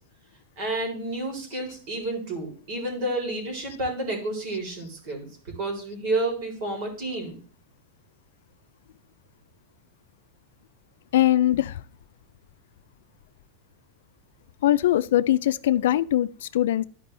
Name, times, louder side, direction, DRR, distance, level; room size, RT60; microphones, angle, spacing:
voice 1, 0.6-7.4, right 2 dB, 55° right, 3.8 m, -30 dB
voice 2, 11.1-11.8 14.6-16.8, left 13 dB, 80° left, 0.4 m, -22 dB
12.0 x 5.1 x 3.3 m
supercardioid pair, 150°, 0 cm